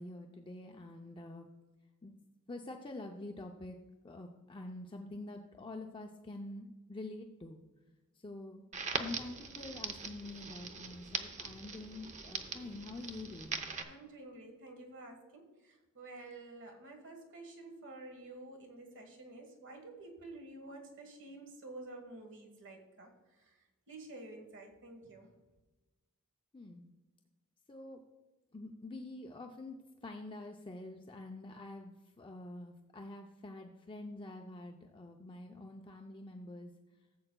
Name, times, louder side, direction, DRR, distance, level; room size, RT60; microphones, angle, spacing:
voice 1, 0.0-1.5 2.0-2.2 2.5-3.8 4.0-7.6 8.2-8.6 8.9-13.9 26.5-26.9 27.7-28.0 28.5-29.8 30.0-36.7, left 2 dB, 25° left, 2 dB, 0.5 m, -46 dB
Crackle, 8.7-13.8, right 4 dB, 35° right, 0.7 m, -41 dB
voice 2, 13.8-23.1 23.9-25.3, right 2 dB, 60° right, 3 dB, 1.3 m, -50 dB
15.0 x 7.7 x 2.2 m, 1.2 s
head